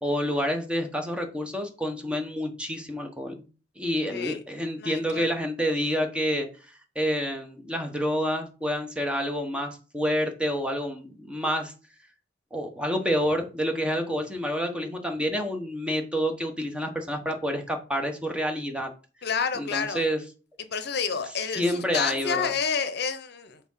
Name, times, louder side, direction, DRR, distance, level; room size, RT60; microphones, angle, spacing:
voice 1, 0.0-3.5 3.8-11.7 12.5-18.9 19.5-20.2 21.6-22.5, equal, 5° right, 1.2 m, -28 dB
voice 2, 4.1-4.4 4.8-5.3 19.2-20.0 20.6-23.6, left 6 dB, 60° left, 0.8 m, -29 dB
7.0 x 3.7 x 5.6 m
head